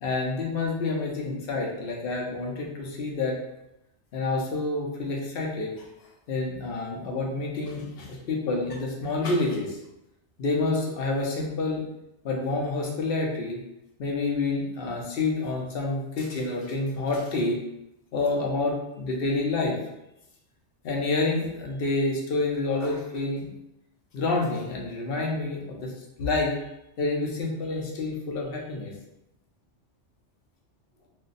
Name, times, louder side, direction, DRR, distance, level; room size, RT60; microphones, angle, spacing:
voice 1, 0.0-3.4 4.1-5.9 6.3-9.8 10.4-11.8 12.2-13.6 14.0-17.6 18.1-19.8 20.8-23.5 24.1-25.9 26.2-26.6 27.0-28.9, left 3 dB, 60° left, 0 dB, 0.8 m, -28 dB
2.5 x 2.1 x 3.9 m, 0.88 s
omnidirectional pair, 1.2 m